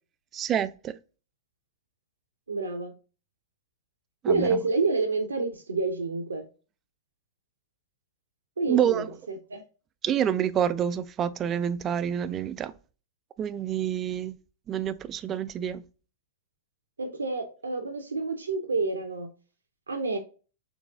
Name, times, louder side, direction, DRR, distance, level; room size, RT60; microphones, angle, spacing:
voice 1, 0.3-0.9 4.2-4.6 8.7-9.1 10.0-12.7 13.4-14.4 14.7-15.8, right 9 dB, 30° right, 0.3 m, -27 dB
voice 2, 2.5-2.9 4.3-6.4 8.6-9.6 17.0-19.3 19.9-20.2, right 3 dB, 80° right, 0.6 m, -28 dB
3.9 x 3.1 x 3.5 m
figure-of-eight pair, 105°, 0 cm